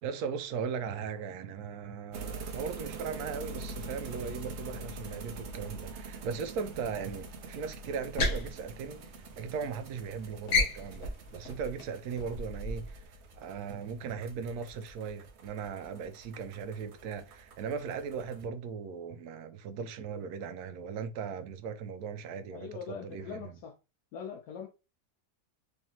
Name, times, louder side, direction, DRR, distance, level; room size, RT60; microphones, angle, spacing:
voice 1, 0.0-23.6, right 6 dB, 75° right, 1.1 m, -38 dB
sound 1, 2.1-18.5, right 3 dB, 60° right, 0.7 m, -45 dB
sound 2, 8.0-9.6 9.9-10.2 10.5-13.0, left 2 dB, 55° left, 1.2 m, -32 dB
voice 2, 22.5-23.7 24.1-24.7, left 6 dB, 85° left, 1.3 m, -42 dB
3.5 x 3.3 x 2.8 m
omnidirectional pair, 1.7 m